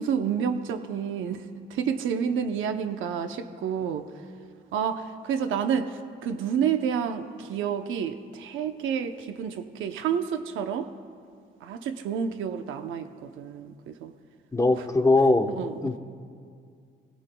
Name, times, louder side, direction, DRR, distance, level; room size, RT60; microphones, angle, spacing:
voice 1, 0.0-1.4 1.7-4.0 4.7-10.9 11.6-14.1 14.7-14.9 15.5-15.8, right 7 dB, 80° right, 8 dB, 0.8 m, -29 dB
voice 2, 14.5-15.5 15.8-16.0, left 2 dB, 15° left, 5 dB, 1.0 m, -21 dB
28.5 x 17.5 x 2.3 m, 2.2 s
cardioid pair, 90°, 20 cm